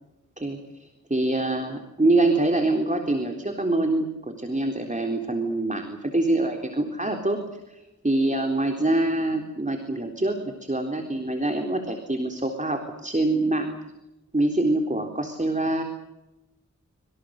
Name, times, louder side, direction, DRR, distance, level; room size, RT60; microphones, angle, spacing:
voice 1, 0.4-7.4 7.7-13.7 14.3-15.8, right 2 dB, 25° right, 4 dB, 3.8 m, -25 dB
27.0 x 26.0 x 6.6 m, 0.96 s
wide cardioid pair, 70°, 31 cm